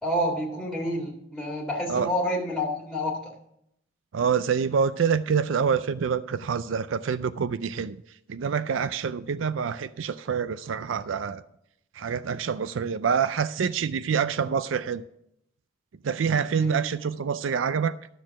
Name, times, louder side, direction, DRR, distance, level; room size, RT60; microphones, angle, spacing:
voice 1, 0.0-3.3 16.6-16.8, equal, ahead, -3 dB, 2.1 m, -29 dB
voice 2, 4.1-8.0 8.3-11.4 12.0-15.0 16.0-18.0, right 6 dB, 80° right, 15 dB, 0.4 m, -26 dB
12.5 x 6.7 x 5.9 m, 0.75 s
head